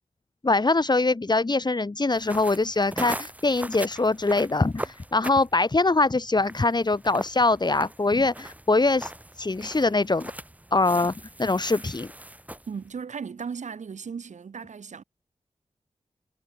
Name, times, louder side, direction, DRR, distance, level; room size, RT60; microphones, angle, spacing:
voice 1, 0.4-9.1 9.4-10.3 10.7-11.1 11.4-12.1, left 3 dB, 35° left, 2.0 m, -23 dB
sound 1, 2.1-12.9, right 1 dB, 10° right, 2.7 m, -40 dB
voice 2, 12.7-15.0, right 6 dB, 85° right, 2.9 m, -36 dB
cardioid pair, 55°, 12 cm